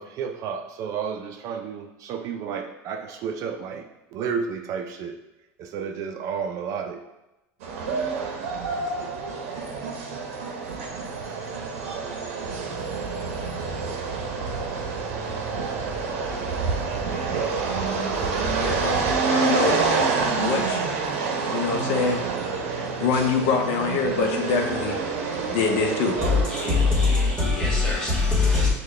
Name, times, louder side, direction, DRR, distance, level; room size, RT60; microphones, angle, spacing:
voice 1, 0.0-5.2 5.6-7.0, right 6 dB, 50° right, 5 dB, 0.4 m, -32 dB
sound 1, 7.6-27.3, right 4 dB, 85° right, 0.7 m, -28 dB
sound 2, 12.4-19.2, right 4 dB, 30° right, 0.8 m, -35 dB
voice 2, 18.6-19.0 19.3-19.8 20.3-20.8 21.5-22.2 23.0-25.0 25.5-26.2, left 5 dB, 70° left, 2 dB, 0.7 m, -25 dB
voice 3, 26.2-28.7, left 4 dB, 10° left, -5 dB, 1.4 m, -21 dB
6.4 x 2.2 x 3.2 m, 0.97 s
supercardioid pair, 125°, 7 cm